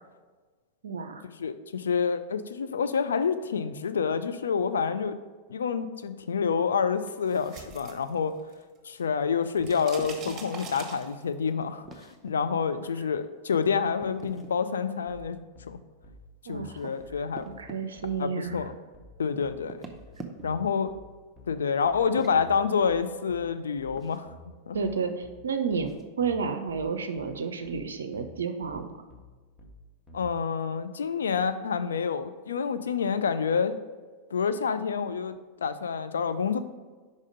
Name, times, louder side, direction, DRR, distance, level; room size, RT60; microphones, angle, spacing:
voice 1, 0.8-1.2 16.5-16.8 17.6-18.6 24.7-25.9 26.2-28.9, right 5 dB, 65° right, 8 dB, 0.4 m, -31 dB
voice 2, 1.4-5.2 5.5-8.4 8.8-15.4 15.7-15.8 16.5-17.5 18.2-18.7 19.2-19.8 20.4-20.9 21.5-24.8 30.1-33.8 34.3-35.4 35.6-36.6, left 6 dB, 70° left, 10 dB, 0.4 m, -28 dB
sound 1, 7.1-8.8 9.0-11.5, right 4 dB, 25° right, 1.1 m, -43 dB
sound 2, 9.6-10.4 11.8-12.3 14.0-14.6 16.5-17.8 19.6-20.7 22.0-22.4 24.0-24.2 25.8-26.1, right 3 dB, 10° right, 0.7 m, -45 dB
sound 3, 15.1-30.3, equal, 15° left, 1.1 m, -51 dB
5.3 x 4.9 x 5.1 m, 1.4 s
figure-of-eight pair, 90°, 0 cm